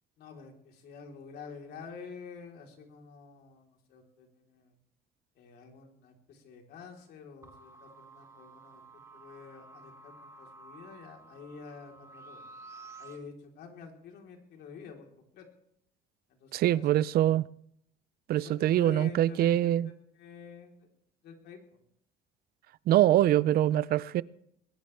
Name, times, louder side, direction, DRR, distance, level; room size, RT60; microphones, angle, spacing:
voice 1, 0.2-4.8 5.4-12.4 13.0-15.5 16.3-16.9 18.3-19.7 20.1-20.9 21.2-21.6, left 5 dB, 75° left, 3.8 m, -48 dB
sound 1, 7.4-13.2, right 3 dB, 15° right, 2.7 m, -52 dB
voice 2, 16.5-17.5 18.3-19.9 22.9-24.2, right 13 dB, 65° right, 0.5 m, -24 dB
21.0 x 18.5 x 3.4 m
cardioid pair, 110°, 17 cm